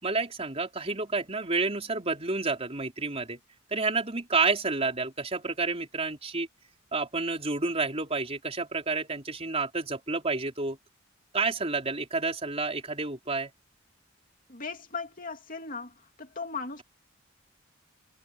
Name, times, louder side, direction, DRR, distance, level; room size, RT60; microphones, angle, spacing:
voice 1, 0.0-3.4 3.7-6.5 6.9-10.8 11.3-13.5, right 3 dB, 30° right, 4.2 m, -29 dB
voice 2, 14.5-16.8, left 4 dB, 45° left, 2.8 m, -38 dB
head